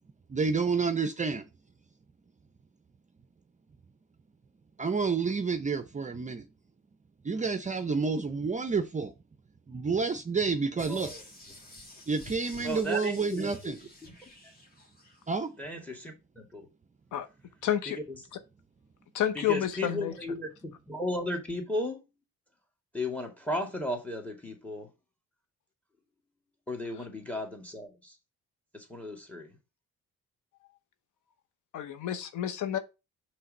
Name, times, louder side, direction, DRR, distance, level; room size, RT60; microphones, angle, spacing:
voice 1, 0.3-1.4 4.8-6.5 7.2-9.1 9.7-11.1 12.1-13.8 15.3-15.5, right 4 dB, 25° right, 0.5 m, -29 dB
sound 1, 10.8-15.2 15.6-15.7, left 1 dB, 30° left, 1.9 m, -49 dB
voice 2, 10.9-11.2 12.6-13.7 15.6-16.7 17.9-18.2 19.4-22.0 22.9-24.9 26.7-28.1 28.7-29.5, left 1 dB, 5° left, 2.1 m, -35 dB
voice 3, 17.6-18.0 19.1-20.1 31.7-32.8, left 10 dB, 80° left, 0.9 m, -29 dB
5.6 x 3.3 x 5.2 m
cardioid pair, 90°, 30 cm